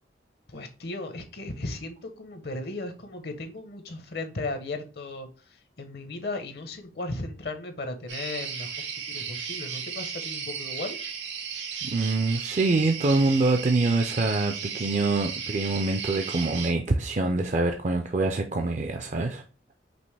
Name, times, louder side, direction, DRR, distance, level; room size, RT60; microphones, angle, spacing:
voice 1, 0.5-5.3 5.8-11.0, left 2 dB, 60° left, 8 dB, 0.7 m, -36 dB
sound 1, 8.1-16.7, right 6 dB, 90° right, 1.1 m, -35 dB
voice 2, 11.8-19.4, right 3 dB, 40° right, 4 dB, 0.4 m, -25 dB
5.3 x 2.9 x 3.2 m, 0.35 s
head